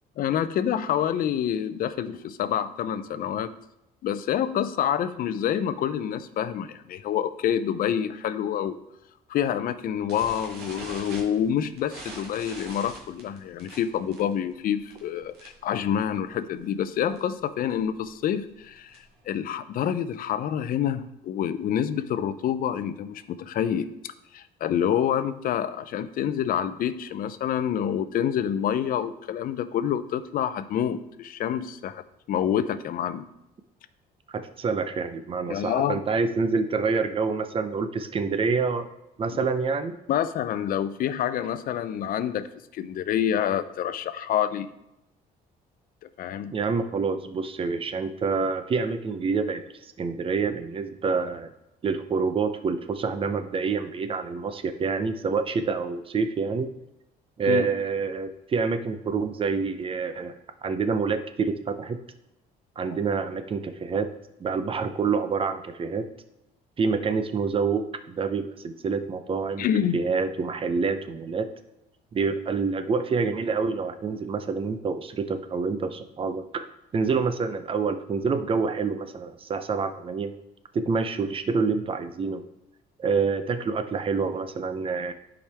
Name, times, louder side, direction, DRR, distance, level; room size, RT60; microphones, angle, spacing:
voice 1, 0.2-3.5 4.0-8.8 9.3-32.0 32.3-33.3 35.5-36.0 40.1-44.7 46.2-46.5 57.5-57.7 69.6-70.0, left 9 dB, 55° left, 13 dB, 0.5 m, -27 dB
sound 1, 10.1-15.7 16.0-16.3 16.5-16.6 16.9-17.2 17.7-19.2, right 2 dB, 70° right, 1.8 m, -43 dB
voice 2, 34.3-38.9 39.2-40.0 46.5-49.6 50.0-51.5 51.8-56.7 57.4-60.4 60.6-62.0 62.8-64.1 64.4-66.1 66.8-69.7 69.9-71.5 72.1-80.3 80.7-82.4 83.0-85.1, right 5 dB, 30° right, 9 dB, 0.7 m, -27 dB
10.5 x 5.0 x 3.4 m, 0.87 s
cardioid pair, 110°, 17 cm